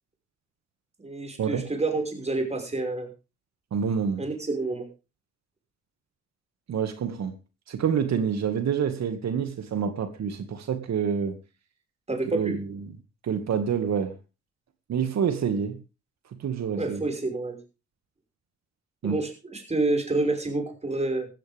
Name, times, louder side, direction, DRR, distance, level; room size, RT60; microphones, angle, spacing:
voice 1, 1.0-3.1 4.2-4.9 12.1-12.6 16.7-17.6 19.0-21.3, right 2 dB, 20° right, 5.7 m, -28 dB
voice 2, 3.7-4.2 6.7-7.3 7.7-11.4 12.3-12.8 13.2-14.2 14.9-15.8 16.4-17.0 19.0-19.2, right 7 dB, 60° right, 2.2 m, -27 dB
17.0 x 14.0 x 3.6 m
cardioid pair, 90°, 30 cm